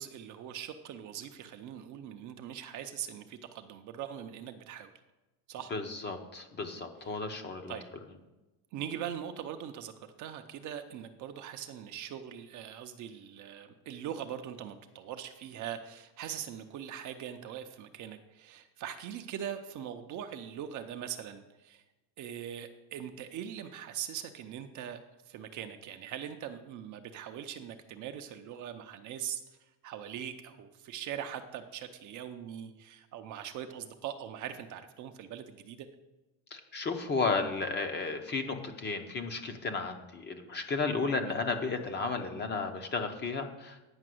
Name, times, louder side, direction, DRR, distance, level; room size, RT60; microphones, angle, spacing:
voice 1, 0.0-4.9 5.5-5.7 7.7-7.9 8.7-21.8 22.2-25.0 25.3-29.4 29.8-35.9 41.1-41.3, right 9 dB, 40° right, 7 dB, 0.6 m, -41 dB
voice 2, 5.7-7.8 36.5-43.8, left 4 dB, 20° left, 6 dB, 0.7 m, -33 dB
9.7 x 5.8 x 7.6 m, 1.1 s
cardioid pair, 170°, 49 cm